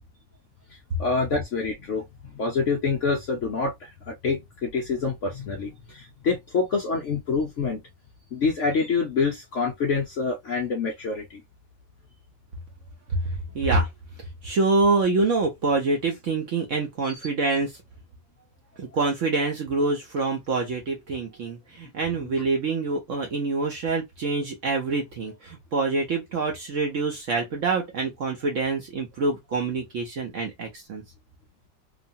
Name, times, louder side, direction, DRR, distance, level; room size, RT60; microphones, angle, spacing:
voice 1, 1.0-2.1 2.3-7.8 8.3-11.4 17.0-17.2 22.2-22.3, left 4 dB, 65° left, 0.7 m, -26 dB
voice 2, 13.5-13.9 14.4-17.7 18.8-31.0, right 3 dB, 60° right, 0.8 m, -26 dB
3.0 x 2.2 x 2.6 m
omnidirectional pair, 1.9 m